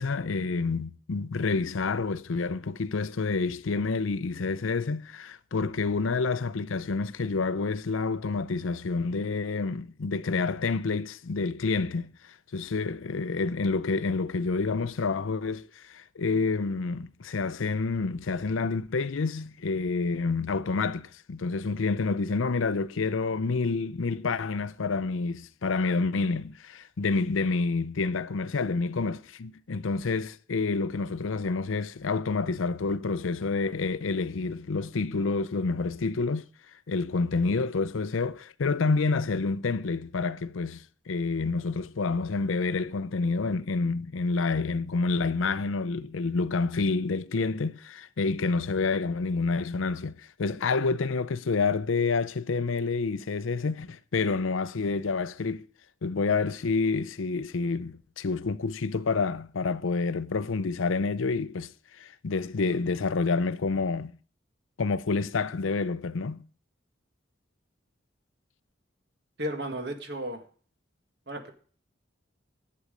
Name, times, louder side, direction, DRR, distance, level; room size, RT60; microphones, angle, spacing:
voice 1, 0.0-36.5 36.9-55.7 56.0-64.1 64.8-66.5, left 4 dB, 90° left, 0.6 m, -28 dB
voice 2, 69.4-70.4 71.3-71.5, right 1 dB, 55° right, 1.7 m, -34 dB
11.5 x 8.6 x 5.2 m
head